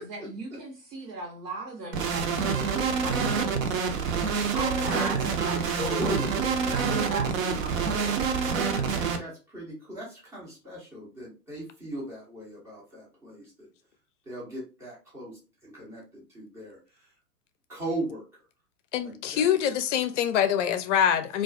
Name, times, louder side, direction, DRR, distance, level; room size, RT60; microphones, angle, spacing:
voice 1, 0.0-3.8 4.5-8.3, right 3 dB, 80° right, 0.9 m, -38 dB
sound 1, 1.9-9.2, right 5 dB, 55° right, 0.6 m, -27 dB
voice 2, 4.5-6.4 8.7-13.7 14.3-15.3 15.6-16.8 17.7-18.2 19.0-19.4, right 1 dB, 5° right, 0.4 m, -37 dB
voice 3, 18.9-21.4, left 9 dB, 50° left, 0.5 m, -25 dB
2.3 x 2.3 x 2.4 m
hypercardioid pair, 115°, 48 cm